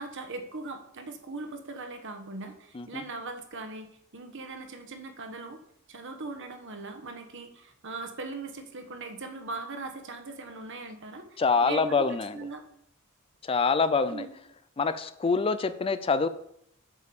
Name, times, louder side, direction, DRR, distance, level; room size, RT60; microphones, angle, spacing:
voice 1, 0.0-5.6 5.9-12.1 12.3-12.6 14.1-14.3, right 3 dB, 60° right, 6 dB, 1.3 m, -40 dB
voice 2, 11.4-12.4 13.4-14.3 14.8-16.3, left 4 dB, 25° left, 12 dB, 0.4 m, -25 dB
8.2 x 5.2 x 6.9 m, 0.72 s
head